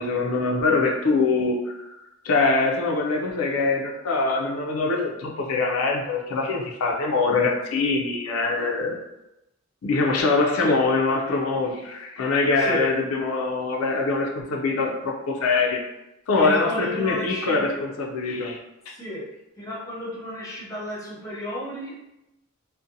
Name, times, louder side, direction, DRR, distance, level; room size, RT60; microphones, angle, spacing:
voice 1, 0.0-1.9 2.2-9.0 9.8-15.8 16.3-18.6 18.9-19.0, left 3 dB, 85° left, 1 dB, 0.4 m, -23 dB
voice 2, 12.6-12.9 16.3-17.8 18.9-19.3 19.6-21.9, equal, 15° left, -6 dB, 0.6 m, -32 dB
2.6 x 2.1 x 2.5 m, 0.92 s
head